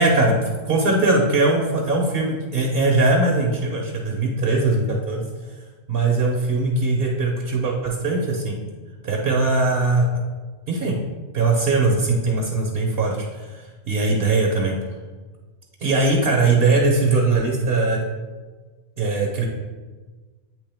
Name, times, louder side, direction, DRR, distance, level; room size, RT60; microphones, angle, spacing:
voice 1, 0.0-5.2 5.9-8.6 9.0-10.1 10.7-10.9 11.3-14.7 15.8-18.0 19.0-19.5, right 3 dB, 60° right, 0 dB, 0.9 m, -20 dB
8.5 x 3.2 x 3.4 m, 1.3 s
omnidirectional pair, 1.2 m